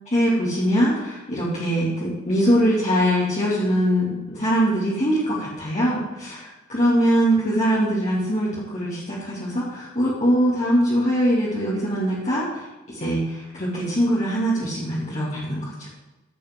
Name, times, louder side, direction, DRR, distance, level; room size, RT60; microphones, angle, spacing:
voice 1, 0.1-15.9, equal, 35° left, -8 dB, 2.7 m, -22 dB
14.5 x 8.5 x 3.8 m, 1.1 s
head